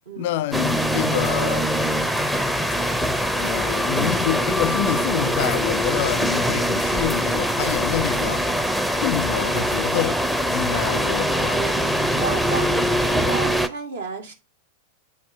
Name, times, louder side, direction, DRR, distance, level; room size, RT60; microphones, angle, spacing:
voice 1, 0.2-1.7 3.3-8.5 9.0-10.2 10.5-11.7, left 12 dB, 50° left, 0.3 m, -27 dB
sound 1, 0.5-13.7, equal, ahead, 0.6 m, -23 dB
voice 2, 3.6-4.0 12.2-14.3, right 4 dB, 65° right, 1.7 m, -32 dB
8.3 x 4.3 x 4.6 m
figure-of-eight pair, 90°, 0 cm